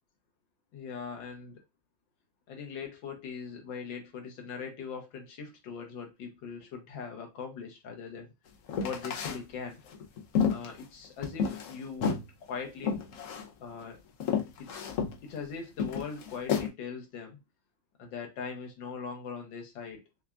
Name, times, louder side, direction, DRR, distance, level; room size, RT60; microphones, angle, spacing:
voice 1, 0.7-1.6 2.5-8.3 8.8-9.8 10.5-13.0 13.6-14.0 14.6-14.7 15.2-17.4 18.0-20.0, left 5 dB, 85° left, 1.7 m, -40 dB
sound 1, 8.7-9.4 9.9-11.8 12.0-12.3 12.8-13.5 13.8-13.9 14.2-15.2 15.8-16.7, left 6 dB, 65° left, 0.8 m, -30 dB
5.8 x 2.3 x 2.3 m
omnidirectional pair, 2.0 m